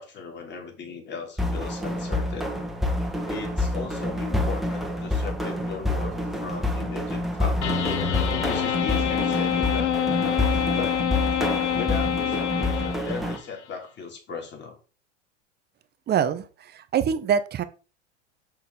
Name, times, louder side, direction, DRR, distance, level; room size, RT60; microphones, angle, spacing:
voice 1, 0.0-2.5 3.3-7.9 8.4-11.0 11.7-14.8, left 5 dB, 30° left, 2 dB, 3.1 m, -37 dB
sound 1, 1.4-13.4, left 1 dB, ahead, 1.5 m, -27 dB
sound 2, 7.6-13.4, left 9 dB, 90° left, 1.0 m, -26 dB
voice 2, 16.1-17.6, right 8 dB, 30° right, 12 dB, 0.8 m, -25 dB
7.1 x 6.7 x 3.8 m, 0.34 s
hypercardioid pair, 95°, 34 cm